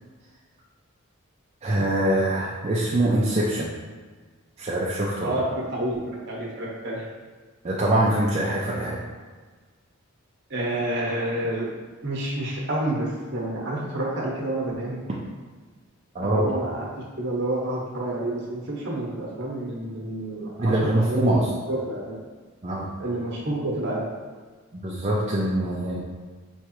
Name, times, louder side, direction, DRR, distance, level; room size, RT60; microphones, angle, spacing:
voice 1, 1.6-3.7 4.6-5.4 7.6-9.0 16.1-16.5 20.6-21.5 22.6-22.9 24.8-26.0, right 1 dB, 30° right, -5 dB, 0.4 m, -23 dB
voice 2, 5.2-7.0 10.5-11.7 12.0-15.0 16.2-16.9 17.2-22.2 23.0-24.1, right 1 dB, 55° right, -3 dB, 1.0 m, -29 dB
4.7 x 3.3 x 3.0 m, 1.4 s
head